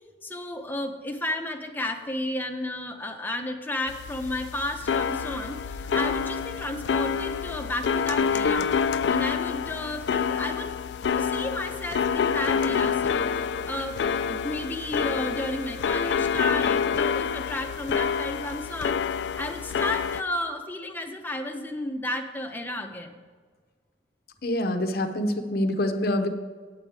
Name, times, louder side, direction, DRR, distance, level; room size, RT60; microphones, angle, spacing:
voice 1, 0.2-8.7 9.1-10.7 11.2-13.2 13.7-19.0 19.4-23.1, left 1 dB, 10° left, 4 dB, 0.7 m, -32 dB
sound 1, 3.9-20.2, left 6 dB, 75° left, 0.3 m, -27 dB
voice 2, 24.4-26.3, left 1 dB, 60° left, 6 dB, 0.7 m, -26 dB
9.1 x 7.2 x 4.7 m, 1.5 s
head